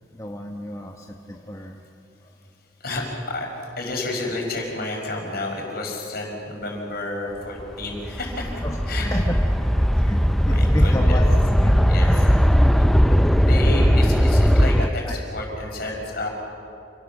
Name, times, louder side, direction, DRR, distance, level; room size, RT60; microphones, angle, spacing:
voice 1, 0.1-1.8 8.6-8.8 9.1-9.3 9.6-9.7 10.0-11.2 11.6-11.8 15.0-15.2, left 1 dB, 15° left, 2 dB, 1.1 m, -31 dB
voice 2, 2.4-9.4 10.4-11.2 11.9-12.3 12.5-12.7 13.4-16.3, left 2 dB, 55° left, 0 dB, 5.4 m, -31 dB
sound 1, 7.6-14.9, equal, ahead, 0.5 m, -18 dB
28.5 x 18.5 x 7.3 m, 2.9 s
head